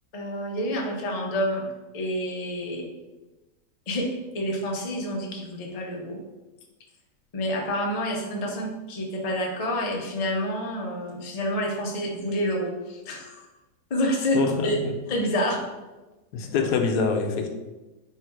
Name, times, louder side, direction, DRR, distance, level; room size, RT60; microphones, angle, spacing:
voice 1, 0.1-1.6 1.9-2.9 3.9-6.2 7.3-13.5 13.9-14.8 15.1-15.6, equal, 50° left, 0 dB, 0.4 m, -28 dB
voice 2, 14.3-14.9 16.3-17.5, left 5 dB, 80° left, 4 dB, 1.2 m, -25 dB
3.6 x 2.8 x 4.5 m, 1.1 s
omnidirectional pair, 1.7 m